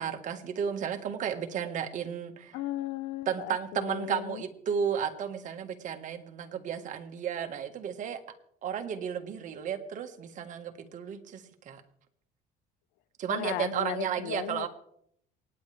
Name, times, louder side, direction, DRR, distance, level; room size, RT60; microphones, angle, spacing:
voice 1, 0.0-2.6 3.2-8.2 8.6-11.8 13.2-14.7, right 8 dB, 50° right, 5 dB, 1.7 m, -33 dB
voice 2, 2.5-4.4 13.3-14.7, left 15 dB, 85° left, 18 dB, 0.7 m, -36 dB
27.5 x 9.8 x 3.5 m, 0.70 s
cardioid pair, 130°, 17 cm